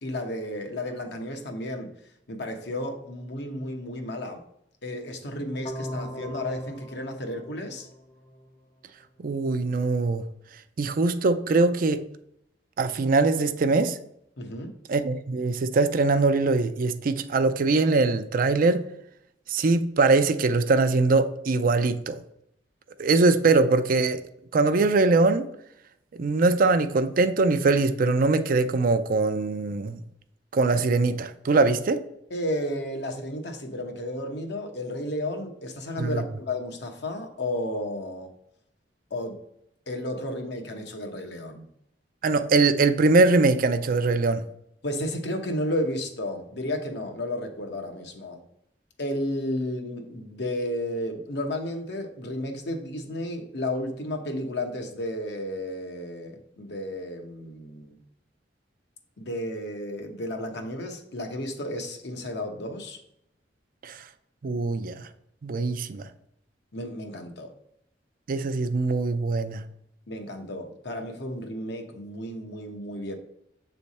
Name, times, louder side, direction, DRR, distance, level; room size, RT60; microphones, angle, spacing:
voice 1, 0.0-1.9 2.3-4.4 4.8-7.9 14.4-14.7 32.3-38.3 39.1-39.4 39.9-41.7 44.8-48.4 49.0-58.0 59.2-63.0 66.7-67.5 70.1-73.2, left 1 dB, 65° left, 0.9 m, -32 dB
sound 1, 5.6-8.6, equal, 30° left, 0.5 m, -38 dB
voice 2, 9.2-10.2 10.8-12.0 12.8-14.0 14.9-18.8 19.5-22.2 23.0-24.2 24.5-25.4 26.1-30.0 30.5-32.0 36.0-36.2 42.2-44.4 63.8-64.0 64.4-65.1 65.4-66.0 68.3-69.6, right 3 dB, 50° right, 0.4 m, -22 dB
7.3 x 3.3 x 4.1 m
head